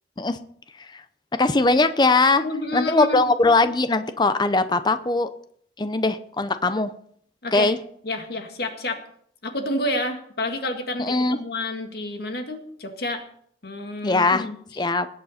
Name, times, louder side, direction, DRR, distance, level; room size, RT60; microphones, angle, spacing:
voice 1, 1.4-2.4 2.7-5.3 5.8-6.9 7.5-7.8 11.0-11.4 14.0-14.5 14.8-15.1, left 3 dB, 25° left, 11 dB, 0.6 m, -20 dB
voice 2, 2.4-3.2 7.4-7.7 8.0-9.0 9.4-13.2 13.6-14.6, left 2 dB, 60° left, 5 dB, 1.9 m, -29 dB
20.0 x 8.2 x 4.3 m, 0.63 s
head